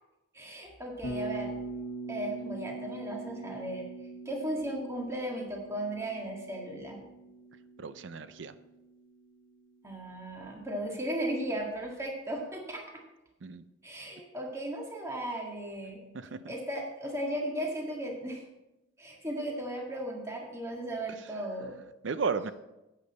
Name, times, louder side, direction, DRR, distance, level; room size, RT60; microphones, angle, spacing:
voice 1, 0.3-1.6 2.1-3.9 4.3-7.0 9.8-12.8 13.8-16.0 16.5-18.4 19.0-21.8, right 1 dB, 15° right, -1 dB, 1.7 m, -36 dB
Bass guitar, 1.0-9.1, right 2 dB, 70° left, 1.1 m, -42 dB
voice 2, 7.8-8.5 13.4-13.6 16.1-16.5 22.0-22.5, right 5 dB, 60° right, 13 dB, 0.5 m, -34 dB
10.5 x 8.6 x 4.1 m, 0.96 s
head